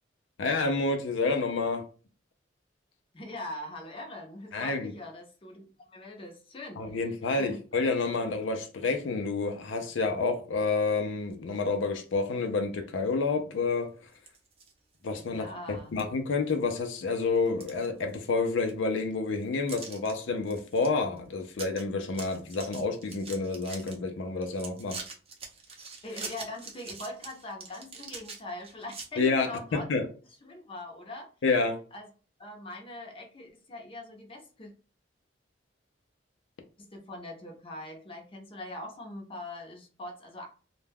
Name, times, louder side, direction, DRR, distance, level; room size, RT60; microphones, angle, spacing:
voice 1, 0.4-1.8 4.5-4.9 6.8-13.9 15.0-25.0 29.2-30.0 31.4-31.8, left 3 dB, 85° left, 0.4 m, -29 dB
voice 2, 3.1-7.6 15.1-16.0 26.0-29.9 30.4-31.3 31.9-32.1 32.4-34.7 36.8-40.5, left 1 dB, 30° left, 0.6 m, -42 dB
sound 1, 14.1-14.7 15.2-15.3 16.0-16.1 16.5-17.0 17.3-18.4 18.7-18.8 19.7-20.1 20.5-20.9 21.2-21.3 21.5-21.8 22.1-23.9 24.4-29.1, right 4 dB, 30° right, 0.6 m, -43 dB
2.2 x 2.1 x 3.3 m
head